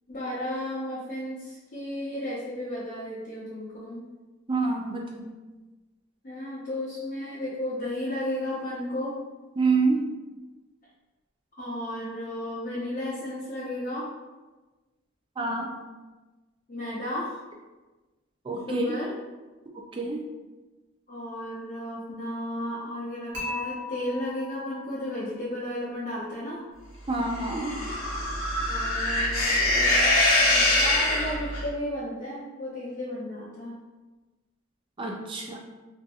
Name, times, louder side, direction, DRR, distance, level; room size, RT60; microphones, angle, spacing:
voice 1, 0.1-4.0 6.2-9.1 11.6-14.1 16.7-17.4 18.7-19.1 21.1-26.6 28.7-33.8, left 1 dB, 40° left, -9 dB, 0.6 m, -34 dB
voice 2, 4.5-5.3 9.6-10.0 15.4-15.7 18.5-19.0 19.9-20.2 27.1-27.8 35.0-35.6, right 3 dB, 25° right, 0 dB, 0.3 m, -27 dB
Dishes pots and pans / Chink clink, 23.3-25.5, left 2 dB, 55° right, 0.9 m, -37 dB
sound 1, 27.3-31.6, left 1 dB, 80° left, 0.6 m, -23 dB
2.6 x 2.5 x 2.3 m, 1.2 s
head